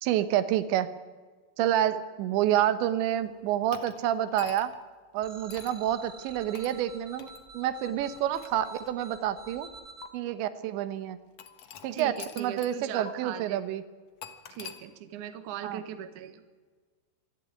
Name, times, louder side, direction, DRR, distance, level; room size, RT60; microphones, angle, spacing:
voice 1, 0.0-0.9 1.6-4.7 5.1-7.3 7.5-9.7 10.1-11.2 11.8-13.8 15.6-15.8, right 11 dB, 85° right, 12 dB, 3.4 m, -28 dB
sound 1, 3.7-4.9 5.5-5.8 6.5-6.8 7.2-7.4 8.1-9.2 10.0-10.1 11.4-12.8 13.1-13.2 14.2-14.8, left 8 dB, 70° left, 1.5 m, -45 dB
sound 2, 5.2-10.1, right 3 dB, 15° right, 2.7 m, -49 dB
voice 2, 11.9-13.6 14.5-16.4, right 9 dB, 60° right, 9 dB, 2.3 m, -39 dB
26.0 x 11.5 x 9.7 m, 1.4 s
omnidirectional pair, 5.0 m